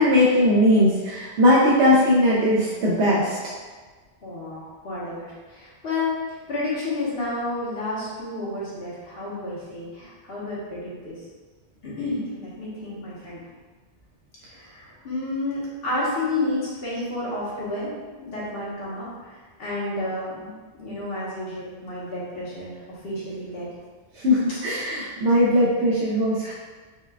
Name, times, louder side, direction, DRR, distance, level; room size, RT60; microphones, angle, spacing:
voice 1, 0.0-3.4 24.2-26.5, left 1 dB, 80° right, -6 dB, 0.9 m, -19 dB
voice 2, 4.2-11.2 11.8-13.4 14.5-20.5 20.8-22.7 23.0-23.7 24.5-24.6, left 2 dB, 60° left, -7 dB, 1.3 m, -31 dB
4.7 x 2.3 x 2.2 m, 1.4 s
omnidirectional pair, 1.1 m